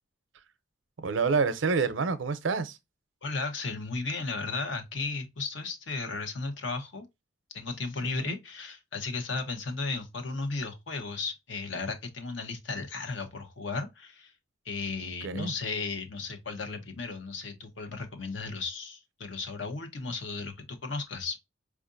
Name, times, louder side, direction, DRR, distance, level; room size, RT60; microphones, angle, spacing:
voice 1, 1.0-2.8 8.0-8.4 15.2-15.5, right 4 dB, 85° right, 0.6 m, -28 dB
voice 2, 3.2-7.1 7.5-14.3 14.6-21.4, left 3 dB, 75° left, 0.8 m, -35 dB
4.6 x 2.5 x 2.4 m
head